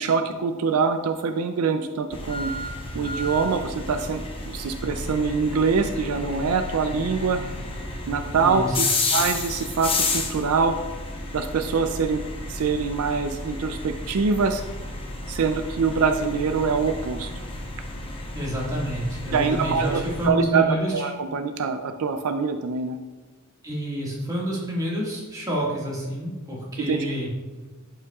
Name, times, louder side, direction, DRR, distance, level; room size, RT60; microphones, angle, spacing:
voice 1, 0.0-2.5 2.9-7.4 8.1-8.8 9.1-10.7 11.3-14.6 15.3-17.3 19.3-20.6 20.9-23.0 26.8-27.2, right 5 dB, 75° right, 7 dB, 0.4 m, -24 dB
sound 1, 2.1-20.3, left 2 dB, 25° left, 0.9 m, -32 dB
voice 2, 8.4-8.8 18.3-21.1 23.6-27.3, equal, 15° right, -5 dB, 1.8 m, -28 dB
10.5 x 5.6 x 2.4 m, 1.2 s
head